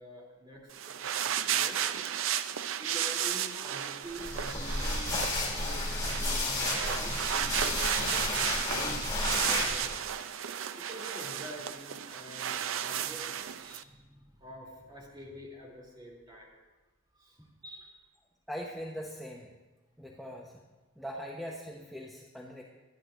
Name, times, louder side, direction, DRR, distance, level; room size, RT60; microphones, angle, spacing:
voice 1, 0.0-1.9 2.8-8.2 8.7-10.0 10.8-16.5 17.2-18.0, equal, 25° right, -2 dB, 2.9 m, -47 dB
sound 1, 0.7-13.8, right 9 dB, 80° right, 0.5 m, -34 dB
sound 2, 4.1-10.1, left 2 dB, 20° left, 2.9 m, -32 dB
voice 2, 18.5-19.5 20.0-20.5 21.0-22.6, equal, ahead, -3 dB, 0.9 m, -41 dB
23.5 x 10.0 x 2.5 m, 1.2 s
head